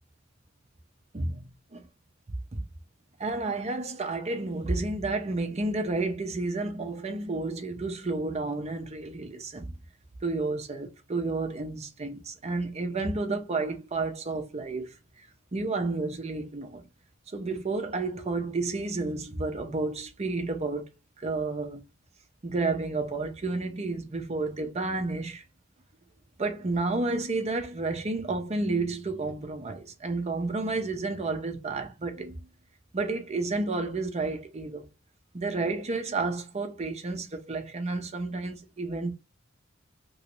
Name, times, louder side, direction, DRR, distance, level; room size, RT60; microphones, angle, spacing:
voice 1, 3.2-9.7 10.2-15.2 15.5-16.8 17.3-20.9 21.2-21.8 22.4-25.4 26.4-32.4 32.9-34.9 35.3-39.1, right 3 dB, 35° right, 0.7 m, -31 dB
3.0 x 2.6 x 3.0 m
head